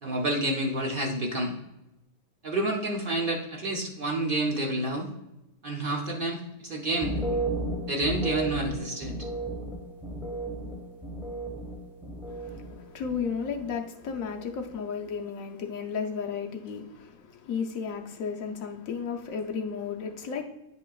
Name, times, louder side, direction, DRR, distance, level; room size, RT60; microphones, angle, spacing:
voice 1, 0.0-1.6 2.4-5.1 5.6-7.4 7.9-9.2, right 1 dB, 55° right, 0 dB, 0.5 m, -29 dB
sound 1, 6.9-12.7 13.0-13.7 14.0-14.5, right 2 dB, ahead, 0.8 m, -34 dB
voice 2, 12.3-20.5, left 6 dB, 65° left, 3 dB, 0.9 m, -34 dB
9.3 x 5.2 x 2.3 m, 0.94 s
omnidirectional pair, 1.9 m